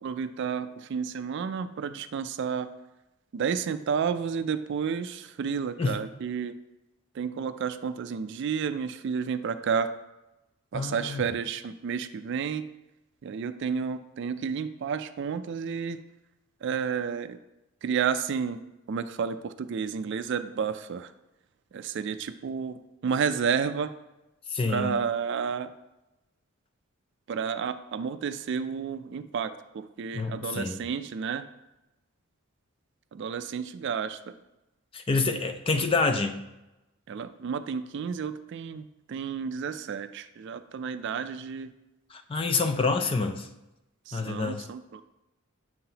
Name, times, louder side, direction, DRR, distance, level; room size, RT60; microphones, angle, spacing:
voice 1, 0.0-2.7 3.3-6.5 7.1-9.9 10.7-12.7 13.2-16.0 16.6-17.4 17.8-18.6 18.9-21.1 21.7-23.9 24.7-25.7 27.3-31.5 33.1-34.3 37.1-41.7 44.1-45.0, right 6 dB, 55° right, 11 dB, 0.3 m, -31 dB
voice 2, 10.7-11.2 24.5-25.0 30.1-30.8 34.9-36.4 42.1-43.5 44.1-44.7, left 3 dB, 25° left, 6 dB, 0.4 m, -27 dB
7.6 x 5.8 x 2.8 m, 0.96 s
head